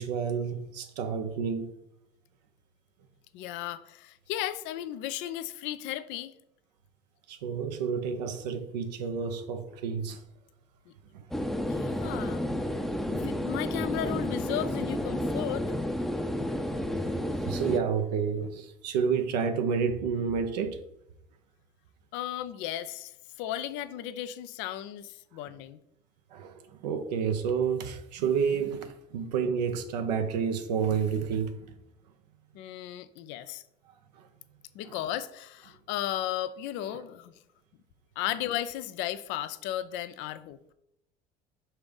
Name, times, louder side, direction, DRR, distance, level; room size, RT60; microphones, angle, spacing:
voice 1, 0.0-1.7 7.3-10.2 11.1-11.3 12.7-12.9 17.0-20.8 26.3-31.7 34.1-34.3 34.8-34.9, right 6 dB, 80° right, 0.8 m, -30 dB
voice 2, 3.3-6.3 10.9-11.0 11.7-12.4 13.1-15.6 22.1-23.1 23.4-25.8 32.5-33.6 34.7-37.4 38.2-40.6, left 12 dB, 65° left, 0.5 m, -35 dB
sound 1, 11.3-17.8, left 1 dB, ahead, 0.6 m, -31 dB
5.7 x 3.4 x 5.3 m
hypercardioid pair, 70°, 21 cm